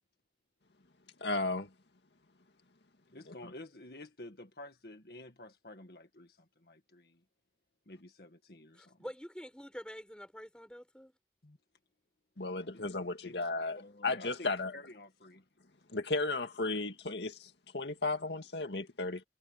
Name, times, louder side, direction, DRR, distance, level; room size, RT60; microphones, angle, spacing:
voice 1, 1.2-1.7 12.4-14.7 15.9-19.2, left 3 dB, 80° left, 2.0 m, -34 dB
voice 2, 3.1-7.2 7.8-9.0 11.4-11.6 12.4-13.0 13.2-13.4 13.7-15.5, left 1 dB, 60° left, 1.8 m, -51 dB
voice 3, 8.7-11.1, equal, 5° left, 5.8 m, -47 dB
head